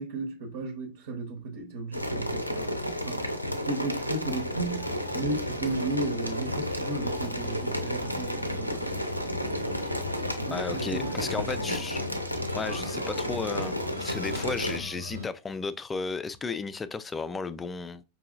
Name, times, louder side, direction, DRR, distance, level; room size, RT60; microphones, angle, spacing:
voice 1, 0.0-3.3 3.6-8.9 10.4-11.5, right 2 dB, 55° right, 0.9 m, -34 dB
sound 1, 1.9-14.8, equal, 90° left, 0.5 m, -32 dB
sound 2, 4.3-15.3, left 3 dB, 80° right, 1.1 m, -41 dB
voice 2, 10.5-12.0 12.5-18.0, left 4 dB, 15° left, 0.3 m, -34 dB
5.2 x 2.8 x 2.5 m
figure-of-eight pair, 90°, 0 cm